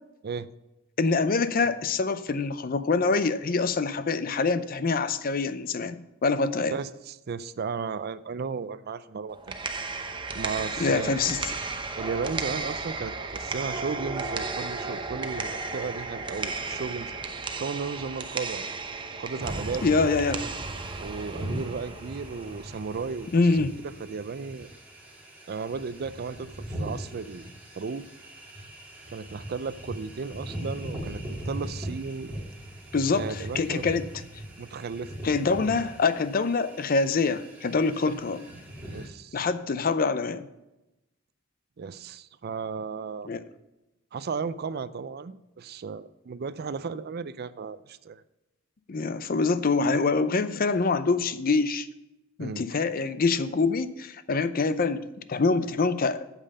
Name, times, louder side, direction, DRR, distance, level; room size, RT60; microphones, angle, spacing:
voice 1, 1.0-6.7 10.8-11.4 19.8-20.4 23.3-23.8 32.9-34.1 35.2-38.4 39.3-40.5 43.2-43.4 48.9-51.9 52.4-56.2, left 4 dB, 45° left, 13 dB, 0.5 m, -25 dB
voice 2, 6.7-9.6 10.3-11.4 12.0-17.1 17.5-18.7 19.2-19.8 20.3-20.5 21.0-23.6 24.0-24.7 25.5-27.5 27.8-28.1 29.1-32.3 33.1-33.8 34.6-35.1 38.1-38.2 38.9-39.4 41.8-43.3 44.1-48.2 52.4-52.8, right 5 dB, 50° right, 15 dB, 0.4 m, -35 dB
sound 1, 9.3-23.3, right 3 dB, 25° right, 0.7 m, -34 dB
sound 2, 19.4-39.1, right 1 dB, 10° right, 2.2 m, -40 dB
8.7 x 7.4 x 5.4 m, 0.96 s
head